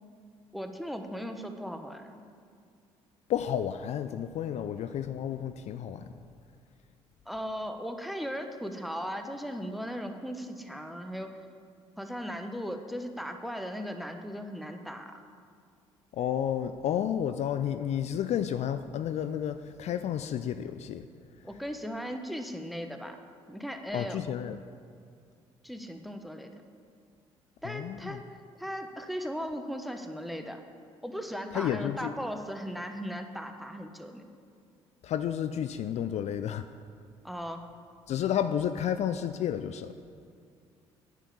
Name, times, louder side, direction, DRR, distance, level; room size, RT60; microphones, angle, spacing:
voice 1, 0.5-2.2 7.3-11.4 12.0-15.2 21.4-23.2 23.5-24.2 25.6-26.5 27.6-28.3 28.6-30.6 31.0-34.2 37.2-37.6, equal, ahead, 6 dB, 1.1 m, -37 dB
voice 2, 3.3-6.1 16.1-21.0 23.9-24.6 27.6-28.2 31.5-32.1 35.0-36.7 38.1-39.9, left 9 dB, 50° left, 11 dB, 0.4 m, -31 dB
10.0 x 7.5 x 6.9 m, 2.3 s
figure-of-eight pair, 50°, 15 cm